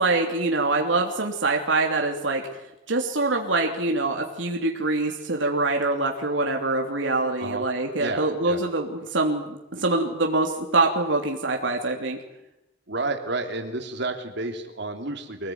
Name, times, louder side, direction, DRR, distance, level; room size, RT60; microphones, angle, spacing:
voice 1, 0.0-2.4 2.9-12.2, right 2 dB, 85° right, 2 dB, 3.0 m, -24 dB
voice 2, 8.0-8.6 12.9-15.5, right 2 dB, 65° right, 4 dB, 3.5 m, -31 dB
25.0 x 19.5 x 9.5 m, 0.89 s
head